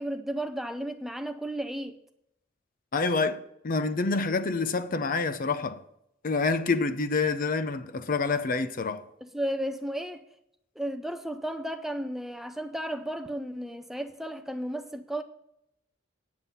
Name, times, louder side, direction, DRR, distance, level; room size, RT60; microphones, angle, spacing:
voice 1, 0.0-2.0 9.2-10.2 10.8-15.2, right 1 dB, ahead, 0.5 m, -33 dB
voice 2, 2.9-5.8 6.2-9.1, left 4 dB, 45° left, 0.6 m, -27 dB
9.6 x 7.3 x 5.6 m
head